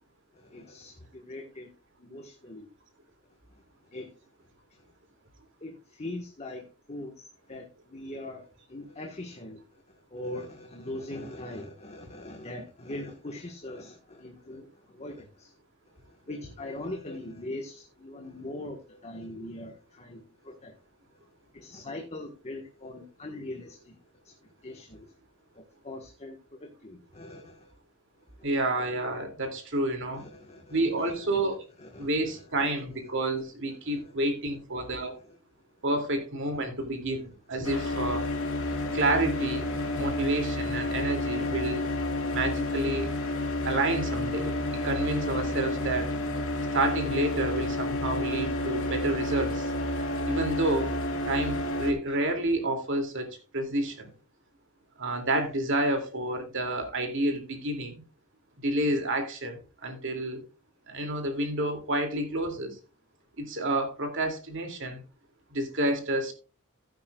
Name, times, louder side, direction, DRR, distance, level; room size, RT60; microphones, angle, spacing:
voice 1, 0.3-1.7 2.0-2.7 3.5-3.6 3.9-4.1 4.7-4.8 5.6-15.5 15.9-20.7 21.5-24.0 24.2-25.1 25.5-27.7 30.1-31.1 31.8-32.7 33.0-33.1 33.7-34.1 34.8-35.4, left 1 dB, 30° left, 1.4 m, -42 dB
voice 2, 28.4-30.2 30.7-31.6 32.0-35.2 35.8-38.3 38.9-41.8 42.3-43.1 43.6-46.2 46.7-49.7 50.3-50.9 51.2-54.1 55.0-58.0 58.6-60.4 60.9-62.8 63.4-65.0 65.5-66.3, right 1 dB, 60° right, 2.6 m, -29 dB
sound 1, 37.6-51.9, left 1 dB, 65° left, 3.1 m, -30 dB
15.5 x 9.1 x 2.4 m
head